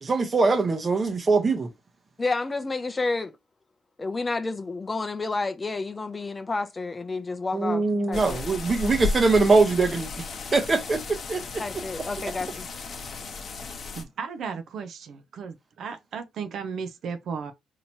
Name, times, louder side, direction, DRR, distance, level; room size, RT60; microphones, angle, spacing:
voice 1, 0.0-1.7 7.5-10.1 10.5-11.6, right 3 dB, 35° right, 0.9 m, -22 dB
voice 2, 2.2-3.4 4.0-8.4 11.6-12.5, left 3 dB, 25° left, 0.5 m, -30 dB
sound 1, 8.1-14.0, left 4 dB, 50° left, 0.8 m, -34 dB
voice 3, 13.9-15.1 15.4-17.5, right 6 dB, 65° right, 0.6 m, -35 dB
4.2 x 2.9 x 2.7 m
cardioid pair, 90°, 0 cm